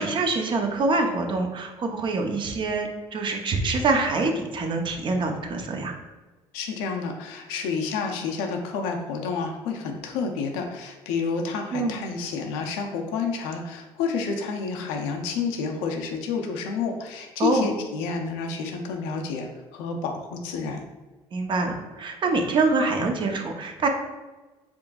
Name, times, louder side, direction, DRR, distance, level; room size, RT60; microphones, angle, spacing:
voice 1, 0.0-5.9 11.7-12.0 17.4-17.7 21.3-23.9, right 3 dB, 45° right, 4 dB, 0.6 m, -25 dB
voice 2, 6.5-20.8, left 5 dB, 90° left, 3 dB, 0.5 m, -29 dB
3.7 x 3.6 x 2.3 m, 1.2 s
supercardioid pair, 85°, 11 cm